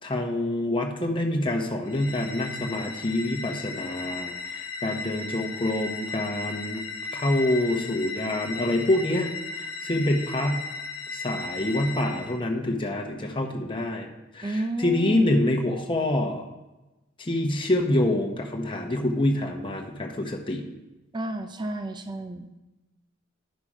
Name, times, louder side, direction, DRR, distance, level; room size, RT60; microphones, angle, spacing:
voice 1, 0.0-6.8 7.1-9.3 9.6-10.6 11.1-14.1 14.3-16.4 17.2-20.6, left 1 dB, 25° left, 1 dB, 1.0 m, -26 dB
sound 1, 1.9-12.4, left 4 dB, 85° left, 0.9 m, -36 dB
voice 2, 14.4-15.2 21.1-22.5, right 1 dB, 25° right, 7 dB, 0.5 m, -32 dB
10.5 x 5.8 x 4.9 m, 1.0 s
head